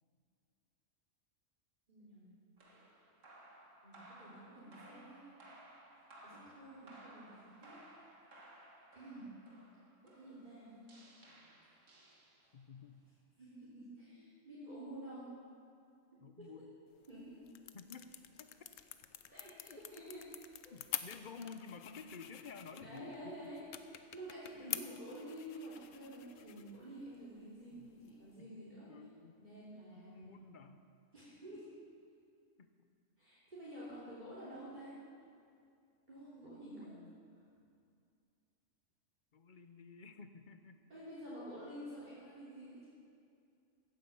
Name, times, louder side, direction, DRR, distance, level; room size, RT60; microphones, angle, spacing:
voice 1, 1.9-2.3 3.8-5.3 6.2-7.8 8.9-9.3 10.0-10.7 13.4-15.3 16.4-16.5 17.1-17.3 19.3-20.2 22.7-28.9 29.4-30.4 31.1-31.6 33.2-34.9 36.1-36.9 40.9-42.9, right 1 dB, 35° right, -10 dB, 3.4 m, -50 dB
sound 1, 2.6-12.7, right 1 dB, 80° right, 2.2 m, -59 dB
voice 2, 12.5-13.0 16.2-16.7 17.7-18.5 19.7-19.8 20.7-23.3 24.5-24.8 27.7-27.9 28.4-28.5 28.9-29.4 30.0-30.8 32.6-32.9 34.9-35.0 36.4-37.2 39.3-40.8, left 5 dB, 45° left, 8 dB, 0.9 m, -52 dB
sound 2, 16.9-28.4, left 10 dB, 85° left, 1.1 m, -48 dB
16.0 x 9.4 x 7.1 m, 2.4 s
omnidirectional pair, 1.3 m